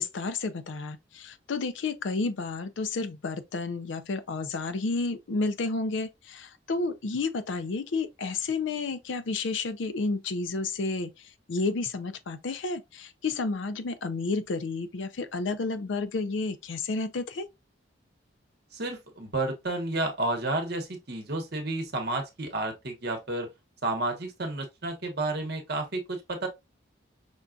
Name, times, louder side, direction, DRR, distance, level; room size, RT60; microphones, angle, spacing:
voice 1, 0.0-17.5, left 3 dB, 75° left, 0.5 m, -31 dB
voice 2, 18.7-23.5 23.8-26.5, right 2 dB, 55° right, 1.0 m, -31 dB
5.3 x 2.3 x 2.5 m
head